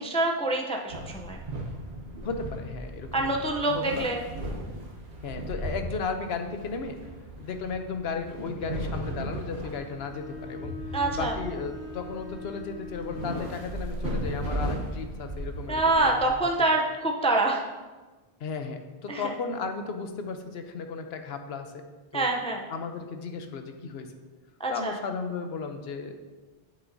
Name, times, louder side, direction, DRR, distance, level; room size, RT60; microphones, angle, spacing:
voice 1, 0.0-1.4 3.1-4.2 10.9-11.4 15.7-17.6 19.1-19.3 22.1-22.6 24.6-25.0, right 2 dB, 10° left, 1 dB, 0.4 m, -26 dB
sound 1, 0.9-16.3, right 1 dB, 85° right, 1.3 m, -36 dB
voice 2, 2.2-3.1 3.7-4.1 5.2-7.0 7.4-10.7 11.1-16.1 18.4-21.8 22.1-22.3 22.7-24.1 24.7-26.1, left 5 dB, 85° left, 6 dB, 1.0 m, -35 dB
Bowed string instrument, 9.6-13.6, left 3 dB, 60° left, 1.0 m, -42 dB
8.7 x 7.2 x 2.7 m, 1.3 s
omnidirectional pair, 1.0 m